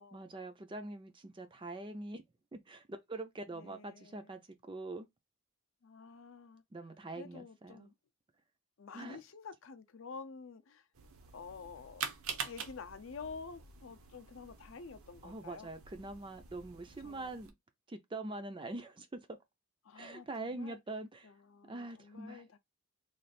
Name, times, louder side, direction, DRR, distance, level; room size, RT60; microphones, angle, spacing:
voice 1, 0.1-2.2 2.5-5.1 6.7-7.9 8.9-9.2 15.2-17.5 17.9-19.2 20.0-21.3 21.7-22.4, right 2 dB, 20° right, 0.4 m, -44 dB
voice 2, 3.5-4.3 5.8-6.6 7.1-7.9 8.8-10.8 11.3-12.0 12.3-15.7 17.0-17.4 19.8-20.8 21.2-22.6, left 5 dB, 60° left, 0.5 m, -49 dB
sound 1, 10.9-17.5, right 6 dB, 70° right, 0.7 m, -46 dB
3.2 x 2.4 x 4.0 m
head